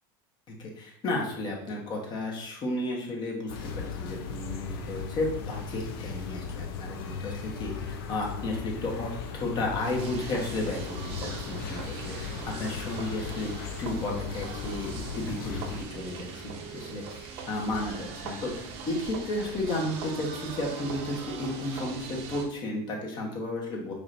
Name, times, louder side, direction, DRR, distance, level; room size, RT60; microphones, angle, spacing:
voice 1, 0.5-13.5 13.8-23.9, left 2 dB, 40° left, -1 dB, 1.2 m, -33 dB
sound 1, 3.5-15.8, left 6 dB, 85° left, 0.5 m, -37 dB
sound 2, 9.8-22.5, right 5 dB, 60° right, 0.7 m, -41 dB
4.9 x 3.3 x 2.6 m, 0.67 s
supercardioid pair, 125°, 12 cm